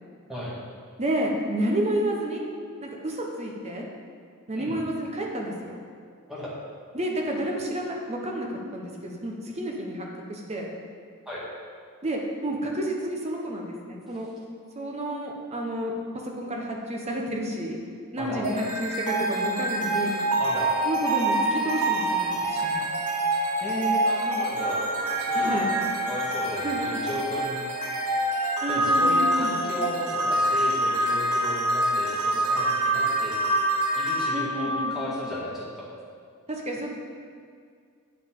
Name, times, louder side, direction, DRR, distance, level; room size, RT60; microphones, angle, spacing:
voice 1, 1.0-2.4 2.8-3.9 4.5-5.8 6.9-10.7 12.0-14.3 14.8-15.9 16.2-17.8 18.1-20.1 20.8-22.8 25.3-25.7 26.6-26.8 28.6-29.5 34.3-34.9 36.5-36.9, right 1 dB, 30° right, 0 dB, 1.0 m, -30 dB
sound 1, 18.4-35.6, right 1 dB, 80° right, 1.1 m, -26 dB
voice 2, 20.4-20.7 23.6-27.6 28.7-33.4 34.0-35.9, equal, ahead, -8 dB, 1.8 m, -35 dB
9.1 x 5.4 x 3.8 m, 2.1 s
head